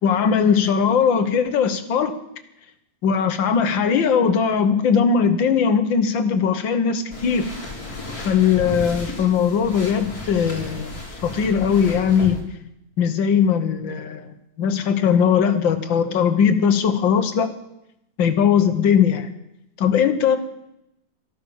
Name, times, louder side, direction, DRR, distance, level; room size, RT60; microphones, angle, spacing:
voice 1, 0.0-2.1 3.0-7.5 8.2-10.9 11.2-12.4 13.0-17.5 18.2-19.3 19.8-20.4, left 7 dB, 75° left, 9 dB, 1.9 m, -19 dB
sound 1, 7.1-12.4, left 1 dB, 50° left, 3.8 m, -33 dB
13.0 x 12.5 x 7.1 m, 0.83 s
omnidirectional pair, 2.1 m